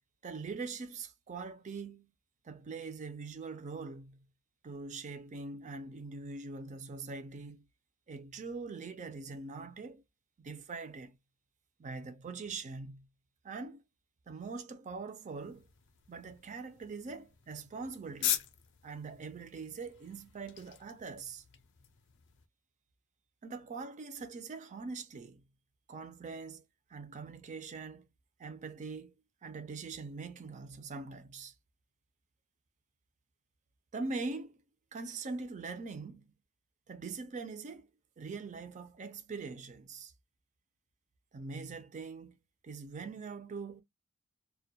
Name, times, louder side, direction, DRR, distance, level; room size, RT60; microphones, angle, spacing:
voice 1, 0.2-2.1 2.4-4.2 4.6-7.7 8.1-10.0 10.4-11.2 11.8-13.1 13.4-13.8 14.3-15.7 16.1-18.4 18.8-21.4 23.4-25.4 25.9-26.6 26.9-28.1 28.4-29.1 29.4-31.5 33.9-34.6 34.9-36.3 36.9-37.9 38.2-40.1 41.3-42.4 42.6-43.8, right 4 dB, 35° right, 0.4 m, -42 dB
sound 1, 15.4-22.5, left 11 dB, 55° left, 0.5 m, -42 dB
2.1 x 2.1 x 2.6 m
head